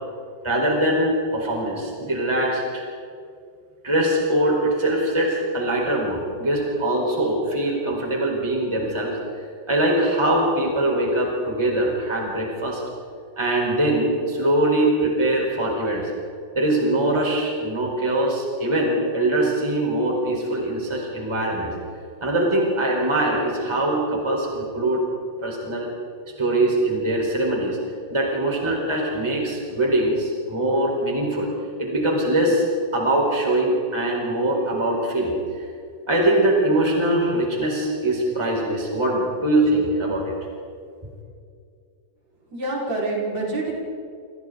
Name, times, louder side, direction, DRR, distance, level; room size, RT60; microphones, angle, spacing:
voice 1, 0.4-2.9 3.8-9.2 9.7-12.8 13.4-16.1 16.5-21.7 22.2-25.0 25.4-25.9 26.4-27.8 28.1-31.5 31.8-32.6 32.9-35.6 36.1-40.3, right 1 dB, 5° right, -2 dB, 4.5 m, -22 dB
voice 2, 42.5-43.7, right 2 dB, 50° right, -5 dB, 6.6 m, -26 dB
29.0 x 28.5 x 4.1 m, 2.3 s
omnidirectional pair, 4.0 m